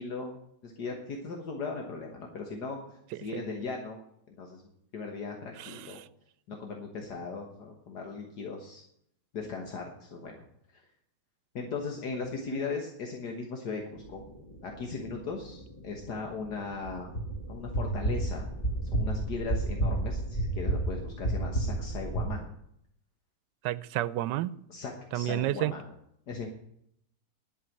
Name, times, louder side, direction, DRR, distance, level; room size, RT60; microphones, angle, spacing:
voice 1, 0.0-4.0 4.3-4.6 4.9-6.0 6.5-8.8 9.3-10.3 10.7-10.8 11.6-14.2 14.6-17.1 17.5-18.5 18.9-22.5 24.7-25.8 26.3-26.5, left 4 dB, 70° left, 2 dB, 1.9 m, -38 dB
voice 2, 5.6-6.1 23.6-24.6 25.1-25.7, right 14 dB, 85° right, 17 dB, 1.3 m, -31 dB
sound 1, 14.0-22.3, right 2 dB, 20° left, 1.9 m, -32 dB
11.0 x 6.7 x 8.5 m, 0.73 s
omnidirectional pair, 1.8 m